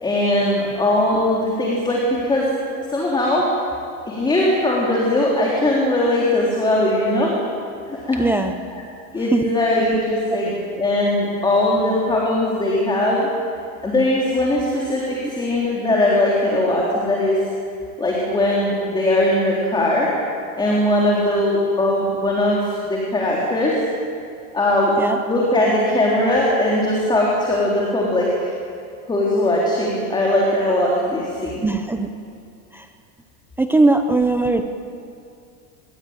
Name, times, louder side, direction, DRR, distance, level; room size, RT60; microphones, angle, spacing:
voice 1, 0.0-2.5 2.9-3.5 4.1-7.3 7.9-8.3 9.1-13.3 13.8-17.4 18.0-20.1 20.6-23.8 24.5-25.0 25.3-28.5 29.1-31.7, left 1 dB, 10° left, -4 dB, 3.8 m, -20 dB
voice 2, 8.2-8.5 9.3-9.5 10.3-10.4 25.0-25.2 31.6-32.1 32.7-32.9 33.6-34.6, right 2 dB, 5° right, 6 dB, 0.6 m, -19 dB
27.5 x 21.5 x 9.1 m, 2.4 s
supercardioid pair, 160°, 43 cm